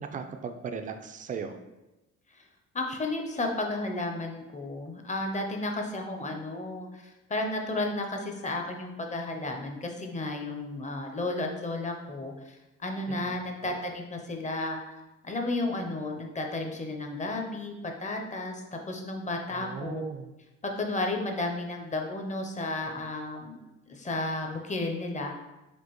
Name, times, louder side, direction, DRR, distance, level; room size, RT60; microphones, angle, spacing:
voice 1, 0.0-1.6 13.1-13.4 19.6-20.3, right 6 dB, 25° right, 7 dB, 0.3 m, -37 dB
voice 2, 2.7-14.8 15.2-20.0 20.6-23.6 23.9-25.3, left 2 dB, 25° left, 3 dB, 0.6 m, -33 dB
4.4 x 2.5 x 3.0 m, 1.0 s
cardioid pair, 90°, 30 cm